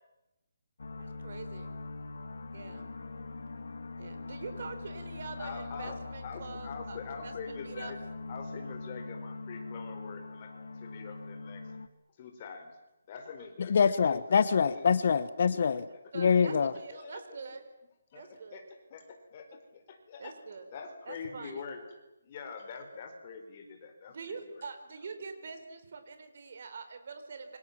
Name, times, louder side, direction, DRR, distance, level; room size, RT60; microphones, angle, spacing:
sound 1, 0.8-11.9, left 3 dB, 80° left, 2.4 m, -42 dB
voice 1, 1.0-1.7 2.5-2.9 4.0-7.0 7.2-7.3 7.6-7.9 16.1-17.7 18.1-18.6 20.2-20.6 21.0-21.6 24.1-27.6, right 5 dB, 50° right, 8 dB, 4.6 m, -44 dB
voice 2, 5.4-8.0 8.3-11.7 12.2-12.7 13.1-13.7 14.1-14.2 14.7-15.2 15.5-15.7 15.9-16.4 16.9-17.4 18.1-18.6 18.9-20.3 20.7-21.8 22.2-24.6, left 5 dB, 30° left, 5 dB, 4.4 m, -45 dB
voice 3, 13.7-15.8 16.1-16.7, left 6 dB, 45° left, 14 dB, 1.1 m, -25 dB
28.5 x 25.0 x 7.4 m, 0.94 s
hypercardioid pair, 170°, 0 cm